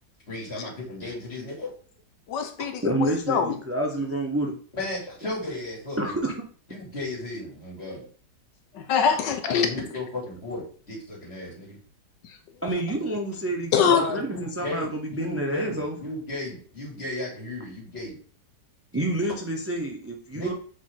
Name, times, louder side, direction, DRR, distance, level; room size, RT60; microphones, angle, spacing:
voice 1, 0.3-1.7 4.8-6.2 6.7-8.1 9.5-11.8 13.9-18.2 20.3-20.5, left 1 dB, 35° left, -4 dB, 3.4 m, -34 dB
voice 2, 2.3-3.5 8.7-9.7 13.7-14.0, left 7 dB, 90° left, 7 dB, 1.5 m, -23 dB
voice 3, 2.8-4.5 6.0-6.3 12.6-16.0 18.9-20.5, right 1 dB, 15° right, 2 dB, 0.6 m, -28 dB
6.5 x 4.9 x 3.9 m, 0.43 s
omnidirectional pair, 1.8 m